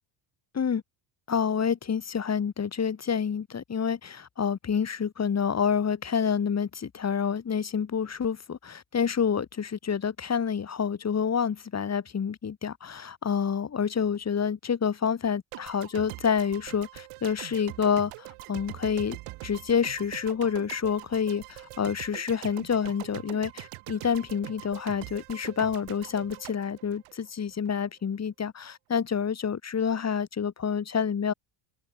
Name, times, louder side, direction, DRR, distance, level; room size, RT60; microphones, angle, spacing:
voice 1, 1.3-31.3, left 7 dB, 30° left, 7.7 m, -28 dB
sound 1, 15.5-27.7, right 21 dB, 90° right, 7.7 m, -43 dB
open air
cardioid pair, 140°, 49 cm